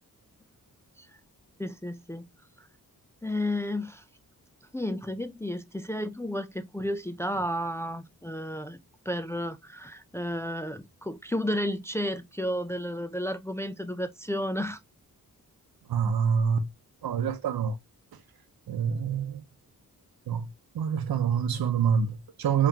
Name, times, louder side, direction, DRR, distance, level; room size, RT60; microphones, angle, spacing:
voice 1, 1.6-2.3 3.2-4.0 4.7-8.8 9.1-14.8, left 1 dB, 10° left, 0.3 m, -32 dB
voice 2, 15.9-16.6 17.0-17.7 18.7-19.4 20.3-20.5 20.7-22.7, right 7 dB, 80° right, 0.8 m, -26 dB
3.7 x 3.2 x 2.7 m
wide cardioid pair, 120°, 36 cm